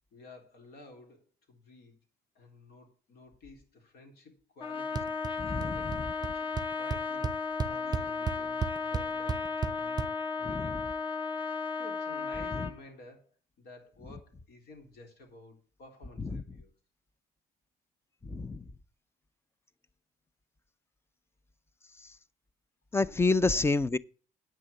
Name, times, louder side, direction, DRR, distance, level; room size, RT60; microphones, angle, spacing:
voice 1, 0.1-2.0 2.3-5.2 5.6-6.5 6.8-7.4 7.6-11.0 11.7-16.7, left 2 dB, 70° left, 3.7 m, -53 dB
Trumpet, 4.6-12.8, left 5 dB, 30° left, 1.6 m, -34 dB
sound 1, 5.0-5.3 5.6-6.0 6.2-6.3 6.6-10.1, right 6 dB, 25° right, 0.6 m, -33 dB
voice 2, 5.4-5.9 10.5-10.7 12.6-12.7 16.3-16.4 18.2-18.6 22.9-24.0, left 3 dB, 15° left, 0.5 m, -28 dB
8.7 x 6.3 x 8.4 m
cardioid pair, 110°, 17 cm